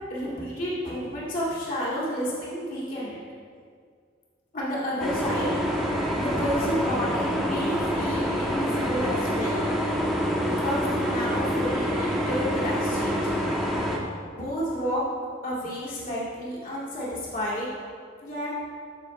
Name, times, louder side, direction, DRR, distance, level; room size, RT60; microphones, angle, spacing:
voice 1, 0.1-3.2 4.5-5.6 6.1-9.6 10.4-13.3 14.3-15.0 15.4-17.7 18.2-18.5, equal, 45° left, -7 dB, 2.3 m, -30 dB
sound 1, 5.0-14.0, equal, ahead, 1.3 m, -27 dB
14.0 x 6.2 x 3.2 m, 2.1 s
head